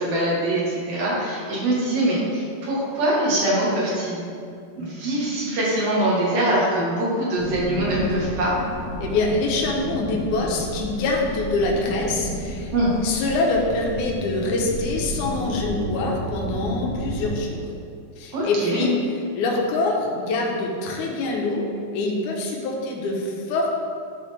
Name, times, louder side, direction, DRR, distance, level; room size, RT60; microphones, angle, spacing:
voice 1, 0.0-4.2 4.8-8.5 12.7-12.9 18.3-18.8, right 1 dB, 60° right, -5 dB, 1.6 m, -23 dB
sound 1, 7.4-17.4, left 1 dB, 50° left, 1.3 m, -31 dB
voice 2, 9.0-12.7 13.0-17.7 18.2-18.9 19.3-21.7 21.9-23.7, left 2 dB, 80° left, -1 dB, 1.8 m, -25 dB
11.5 x 4.1 x 3.3 m, 2.4 s
omnidirectional pair, 4.7 m